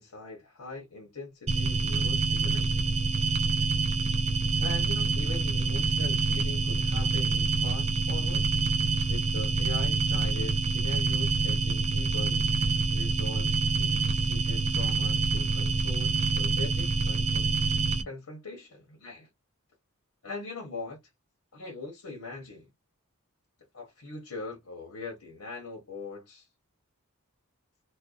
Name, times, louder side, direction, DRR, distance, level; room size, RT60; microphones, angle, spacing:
voice 1, 0.0-3.0 4.6-8.5 9.0-12.5 12.9-17.5 18.1-19.3 20.2-21.0 21.5-22.7 23.7-26.5, left 3 dB, 85° left, 0.9 m, -42 dB
sound 1, 1.5-18.0, right 3 dB, 30° right, 0.3 m, -26 dB
2.5 x 2.1 x 2.4 m
head